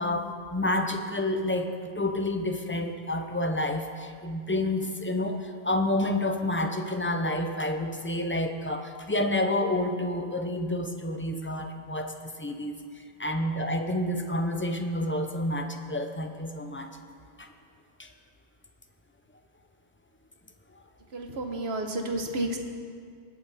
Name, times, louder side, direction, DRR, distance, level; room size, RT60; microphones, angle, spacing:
voice 1, 0.0-17.0 17.4-17.5 18.0-18.1, left 1 dB, 15° left, 5 dB, 0.6 m, -29 dB
voice 2, 21.1-22.6, right 1 dB, 75° right, 4 dB, 1.4 m, -31 dB
19.5 x 8.3 x 4.2 m, 2.1 s
omnidirectional pair, 1.1 m